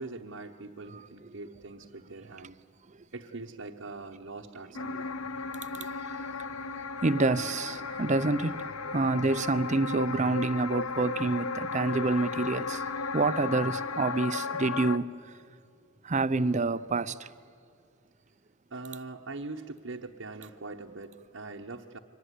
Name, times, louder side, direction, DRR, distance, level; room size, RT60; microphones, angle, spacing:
voice 1, 0.0-2.6 3.1-5.4 8.8-8.9 18.7-22.0, right 3 dB, 65° right, 1.0 m, -42 dB
sound 1, 4.7-15.0, left 4 dB, 90° left, 0.8 m, -35 dB
voice 2, 7.0-8.7 8.9-12.8 13.1-15.1 16.0-17.3, right 3 dB, 35° right, 0.6 m, -27 dB
24.0 x 19.0 x 9.9 m
head